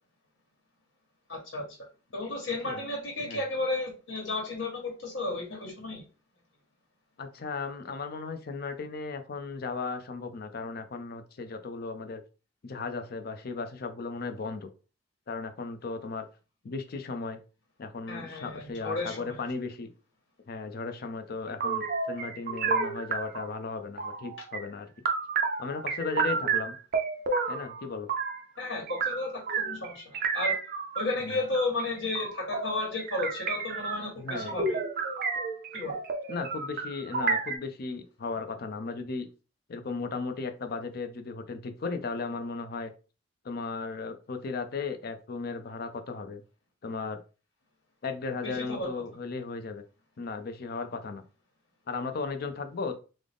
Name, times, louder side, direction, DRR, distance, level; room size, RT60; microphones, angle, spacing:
voice 1, 1.3-1.6 2.1-6.0 18.1-19.4 28.6-30.6 30.9-34.8 35.7-36.0 48.4-48.9, left 2 dB, 75° left, 0 dB, 1.2 m, -33 dB
voice 2, 7.2-12.2 12.6-14.7 15.3-16.3 16.6-17.4 17.8-19.9 20.5-24.9 25.6-26.8 27.5-28.1 31.3-31.4 34.2-34.5 36.3-39.3 39.7-42.9 43.4-46.4 46.8-47.2 48.0-49.8 50.2-51.2 51.9-53.0, left 4 dB, 55° left, 8 dB, 0.5 m, -36 dB
sound 1, 21.6-23.5 24.0-24.6 25.0-28.4 28.9-37.6, right 4 dB, 50° right, 0.5 m, -31 dB
3.7 x 2.0 x 3.4 m, 0.34 s
head